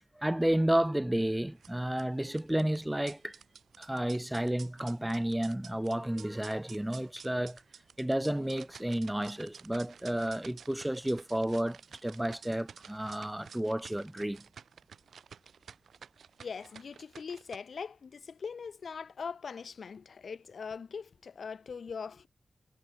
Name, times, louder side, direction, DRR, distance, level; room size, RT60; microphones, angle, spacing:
voice 1, 0.2-3.4 3.8-7.6 8.0-14.4, right 1 dB, 10° right, 0.6 m, -31 dB
sound 1, 1.5-17.6, right 7 dB, 90° right, 1.5 m, -53 dB
voice 2, 16.4-22.3, left 5 dB, 70° left, 1.2 m, -41 dB
wide cardioid pair, 90°, 0 cm